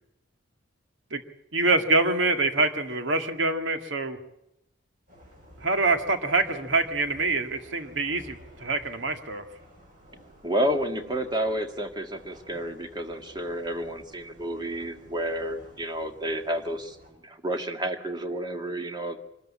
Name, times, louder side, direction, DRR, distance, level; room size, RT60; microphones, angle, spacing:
voice 1, 1.5-4.2 5.6-9.4, right 3 dB, 75° right, 6 dB, 2.1 m, -25 dB
sound 1, 5.1-17.1, equal, 45° right, 8.0 m, -52 dB
voice 2, 10.4-17.0 17.2-19.2, right 1 dB, 20° right, 5 dB, 2.0 m, -30 dB
25.0 x 13.0 x 8.6 m, 0.85 s
head